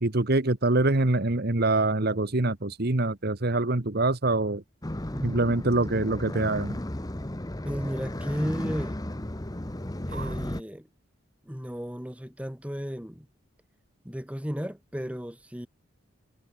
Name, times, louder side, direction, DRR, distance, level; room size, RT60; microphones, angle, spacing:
voice 1, 0.0-4.6 5.2-6.8 10.1-10.3, right 2 dB, 50° right, 1.4 m, -25 dB
sound 1, 4.8-10.6, left 1 dB, 20° left, 1.0 m, -34 dB
voice 2, 5.1-5.4 7.6-9.0 10.1-10.9 11.4-13.3 14.0-15.7, equal, 5° right, 3.0 m, -34 dB
head